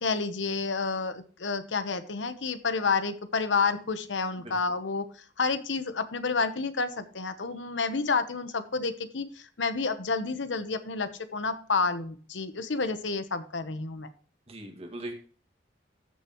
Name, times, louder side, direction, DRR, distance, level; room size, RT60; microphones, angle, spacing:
voice 1, 0.0-5.1 5.4-14.1, left 4 dB, 90° left, 11 dB, 1.0 m, -29 dB
voice 2, 14.5-15.1, right 1 dB, 35° right, 3 dB, 2.0 m, -40 dB
14.0 x 6.7 x 3.0 m, 0.41 s
head